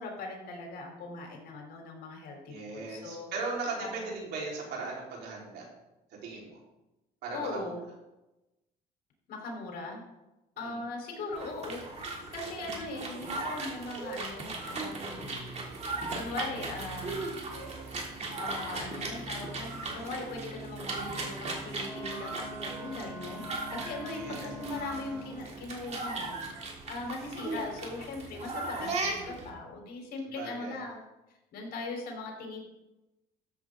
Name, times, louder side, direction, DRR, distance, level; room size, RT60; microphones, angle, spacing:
voice 1, 0.0-3.3 3.8-3.9 7.3-7.8 9.3-10.0 10.6-12.0 12.3-15.4 16.1-17.4 18.4-23.4 23.7-31.1 31.5-32.7, left 2 dB, 65° left, 0 dB, 4.0 m, -40 dB
voice 2, 2.5-5.7 6.1-6.6 7.2-7.8 10.6-10.8 24.1-24.5 30.3-30.8, right 3 dB, 75° right, -3 dB, 4.2 m, -38 dB
sound 1, 11.3-29.5, right 3 dB, 40° right, 3.0 m, -38 dB
Wind instrument woodwind instrument, 21.8-25.5, left 1 dB, 10° left, 4.0 m, -45 dB
14.0 x 8.0 x 3.8 m, 0.97 s
cardioid pair, 110°, 17 cm